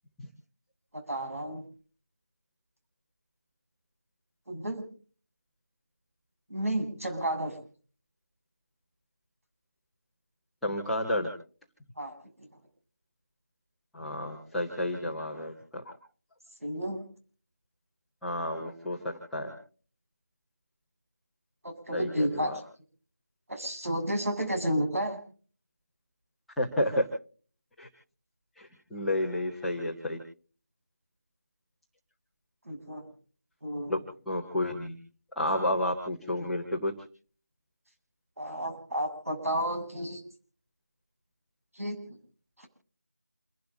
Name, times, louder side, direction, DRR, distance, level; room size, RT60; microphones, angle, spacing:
voice 1, 0.9-1.6 4.5-4.9 6.5-7.6 12.0-12.1 16.6-17.0 21.6-22.5 23.5-25.2 32.7-33.0 33.6-34.0 38.4-40.2 41.7-42.2 42.6-42.7, equal, 60° right, 4 dB, 7.1 m, -31 dB
voice 2, 10.6-11.3 13.9-15.9 18.2-19.5 21.9-22.5 26.6-27.1 27.8-27.9 28.6-30.2 33.9-34.0 34.2-34.9 35.3-36.9, left 1 dB, ahead, -10 dB, 1.5 m, -31 dB
29.0 x 12.0 x 3.6 m, 0.43 s
figure-of-eight pair, 170°, 9 cm